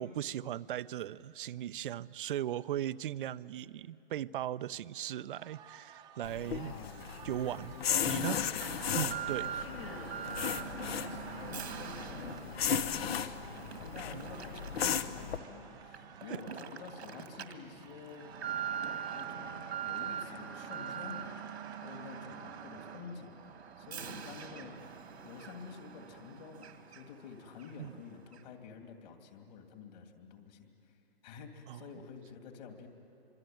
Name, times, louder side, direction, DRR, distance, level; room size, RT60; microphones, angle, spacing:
voice 1, 0.0-6.7 7.2-7.7 8.1-8.4 8.9-9.5 14.1-14.3 16.3-16.4 27.8-28.0 31.7-31.8, right 11 dB, 55° right, 17 dB, 0.6 m, -38 dB
sound 1, 5.3-22.6, right 8 dB, 15° right, 0.8 m, -55 dB
sound 2, 6.2-15.4, left 8 dB, 70° left, 1.1 m, -36 dB
voice 2, 6.4-7.2 7.5-8.2 9.3-13.5 13.8-18.4 19.1-21.4 21.8-24.9 25.2-30.9 31.2-32.9, left 6 dB, 40° left, 4 dB, 2.7 m, -49 dB
Alarm, 8.6-27.3 27.6-27.7 28.3-28.4, right 8 dB, 85° right, 2.0 m, -43 dB
25.5 x 24.5 x 9.2 m, 2.9 s
hypercardioid pair, 155°, 32 cm